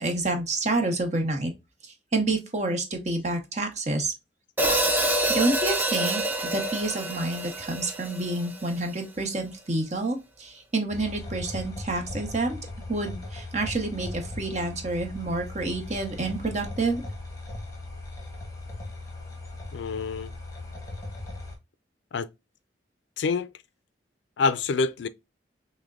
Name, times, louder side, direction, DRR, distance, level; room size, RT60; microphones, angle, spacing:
voice 1, 0.0-1.5 2.1-4.1 5.3-12.6 12.9-17.0, right 2 dB, 40° right, 0.9 m, -28 dB
Hi-hat, 4.6-8.8, right 1 dB, 10° right, 0.5 m, -27 dB
sound 1, 10.9-21.5, left 2 dB, 15° left, 1.1 m, -38 dB
voice 2, 19.7-20.3 22.1-22.3 23.2-23.5 24.4-25.1, left 4 dB, 70° left, 0.4 m, -26 dB
6.1 x 2.1 x 2.3 m
head